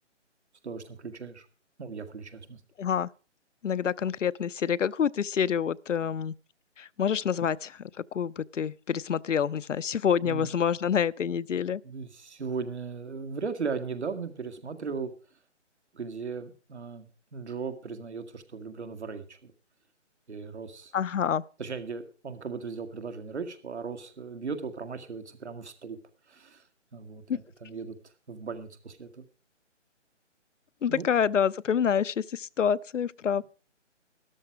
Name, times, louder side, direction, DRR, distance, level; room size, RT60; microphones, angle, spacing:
voice 1, 0.6-1.5 1.8-2.6 10.2-10.5 11.8-15.1 15.9-19.5 20.3-20.9 21.6-26.0 26.3-26.6 26.9-27.2 27.6-28.0 28.3-29.2 30.9-31.0, right 5 dB, 65° right, 2.0 m, -37 dB
voice 2, 2.8-3.1 3.6-6.3 6.8-7.8 8.1-11.8 20.9-21.4 27.3-27.4 30.8-33.4, left 8 dB, 80° left, 0.6 m, -27 dB
13.0 x 12.0 x 4.7 m
figure-of-eight pair, 150°, 36 cm